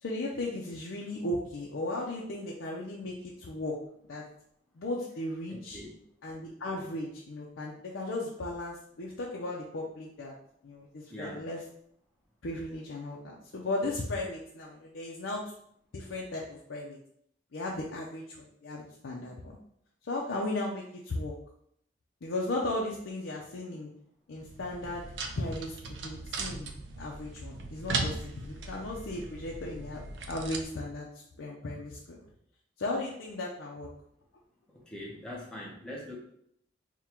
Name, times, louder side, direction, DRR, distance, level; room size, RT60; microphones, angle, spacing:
voice 1, 0.0-3.8 4.1-4.2 4.7-5.8 6.2-10.3 10.6-11.6 12.4-15.5 15.9-17.0 17.5-19.6 20.0-21.3 22.2-23.9 24.3-25.1 25.4-26.7 27.0-31.1 31.4-32.2 32.8-33.9, left 2 dB, 90° left, -3 dB, 0.6 m, -36 dB
voice 2, 11.1-11.4 34.9-36.2, left 1 dB, 5° left, -5 dB, 0.7 m, -41 dB
sound 1, 24.4-30.6, right 3 dB, 65° right, 0.5 m, -38 dB
3.6 x 2.2 x 4.4 m, 0.70 s
head